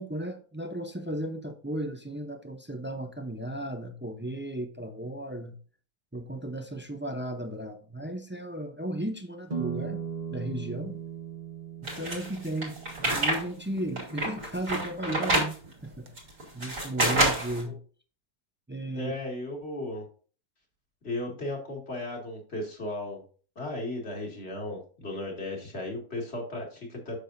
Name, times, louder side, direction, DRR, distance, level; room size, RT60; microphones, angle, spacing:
voice 1, 0.0-5.6 6.1-10.0 10.3-11.0 12.0-16.1 16.5-17.7 18.7-19.1, right 1 dB, 15° right, 7 dB, 0.4 m, -35 dB
sound 1, 9.5-15.1 15.6-16.5, right 6 dB, 35° right, 1.0 m, -39 dB
sound 2, 11.8-13.4 13.8-15.5 16.2-17.6, right 1 dB, 85° right, 4.1 m, -27 dB
voice 2, 18.9-20.0 21.0-23.2 23.6-27.2, left 2 dB, 45° left, 0 dB, 2.5 m, -35 dB
9.7 x 7.0 x 2.7 m, 0.40 s
omnidirectional pair, 1.5 m